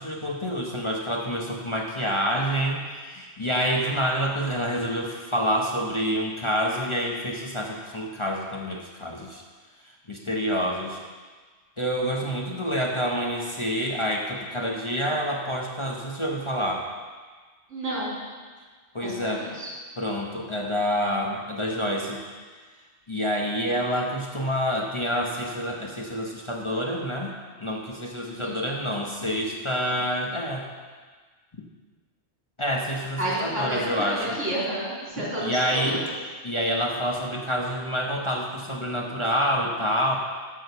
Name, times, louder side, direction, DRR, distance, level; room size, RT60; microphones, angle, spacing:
voice 1, 0.0-9.4 10.1-11.0 11.8-16.9 18.9-19.5 20.0-22.3 23.1-27.3 27.6-30.7 31.5-31.7 32.6-34.4 35.4-36.0 36.4-40.2, equal, 25° left, -1 dB, 0.9 m, -27 dB
voice 2, 17.7-18.2 19.0-19.7 28.3-28.6 33.2-36.1, right 1 dB, 80° right, -7 dB, 3.8 m, -30 dB
9.4 x 6.3 x 6.8 m, 1.5 s
omnidirectional pair, 1.2 m